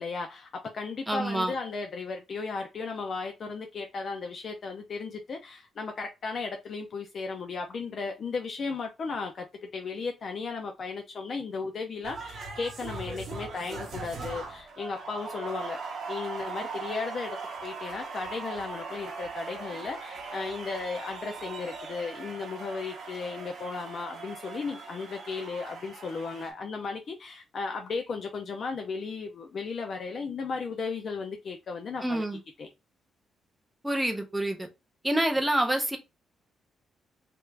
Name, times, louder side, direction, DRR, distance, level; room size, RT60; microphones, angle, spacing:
voice 1, 0.0-15.8 16.1-32.2 32.6-32.7, left 4 dB, 40° left, 0.4 m, -35 dB
voice 2, 1.1-1.5 32.0-32.4 33.8-34.7 35.0-36.0, right 1 dB, 5° right, 0.6 m, -27 dB
sound 1, 12.0-26.5, right 4 dB, 50° right, 0.8 m, -40 dB
3.3 x 2.4 x 3.1 m
wide cardioid pair, 175°, 0 cm